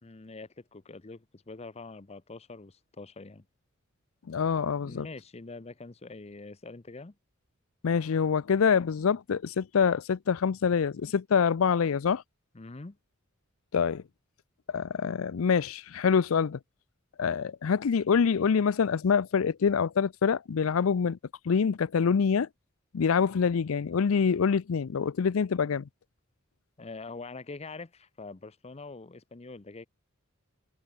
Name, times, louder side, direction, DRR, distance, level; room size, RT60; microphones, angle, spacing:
voice 1, 0.0-3.4 4.8-7.2 12.5-13.0 26.8-29.9, left 3 dB, 30° left, 0.7 m, -44 dB
voice 2, 4.3-5.1 7.8-12.2 13.7-14.0 14.7-16.6 17.2-21.2 21.5-22.5 22.9-25.8, left 6 dB, 75° left, 0.5 m, -25 dB
head